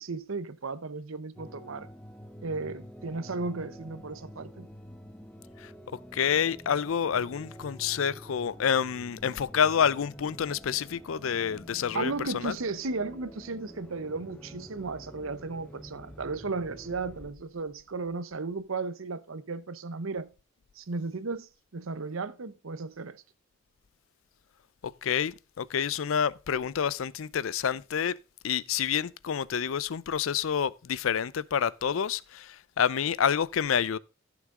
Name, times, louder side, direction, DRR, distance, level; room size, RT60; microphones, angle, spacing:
voice 1, 0.0-1.9 2.4-4.7 11.9-20.3 20.7-23.2, right 3 dB, 85° right, 0.8 m, -35 dB
sound 1, 1.4-17.3, equal, 5° left, 0.8 m, -48 dB
voice 2, 6.1-12.6 24.8-28.1 28.4-34.0, left 7 dB, 80° left, 0.5 m, -28 dB
14.5 x 6.2 x 3.7 m
head